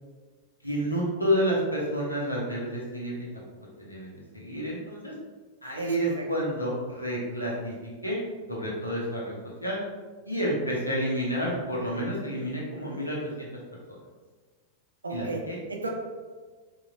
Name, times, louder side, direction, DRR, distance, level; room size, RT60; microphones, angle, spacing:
voice 1, 0.6-3.3 3.8-5.1 5.6-7.7 8.0-8.2 8.5-9.8 10.3-13.5 13.9-14.0 15.1-15.6, equal, 85° left, -4 dB, 0.6 m, -30 dB
voice 2, 5.8-6.2 15.0-15.9, right 2 dB, 75° right, 1 dB, 0.4 m, -34 dB
3.0 x 2.2 x 2.3 m, 1.4 s
figure-of-eight pair, 90°, 0 cm